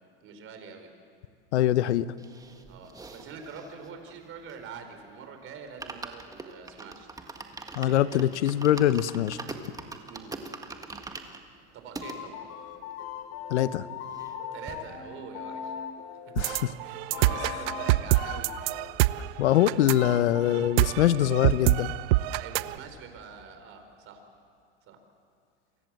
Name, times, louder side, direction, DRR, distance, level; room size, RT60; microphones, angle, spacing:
voice 1, 0.2-0.9 2.7-7.1 10.0-11.2 11.7-12.5 14.5-15.8 16.4-16.5 16.8-18.5 22.3-24.2 24.9-25.0, right 5 dB, 40° right, 6 dB, 4.9 m, -45 dB
voice 2, 1.5-2.1 7.8-9.4 13.5-13.9 16.4-16.6 19.4-21.9, left 12 dB, 85° left, 15 dB, 1.0 m, -23 dB
sound 1, 2.2-5.0 5.3-5.4 5.6-12.2 12.8-12.9 13.0-13.1 13.4-14.4 14.7-14.8, right 3 dB, 10° right, 1.7 m, -42 dB
sound 2, 12.0-16.6 17.1-18.9, left 7 dB, 50° left, 3.2 m, -39 dB
sound 3, 16.4-22.8, right 18 dB, 60° right, 0.8 m, -26 dB
29.0 x 24.5 x 7.8 m, 2.4 s
supercardioid pair, 130°, 34 cm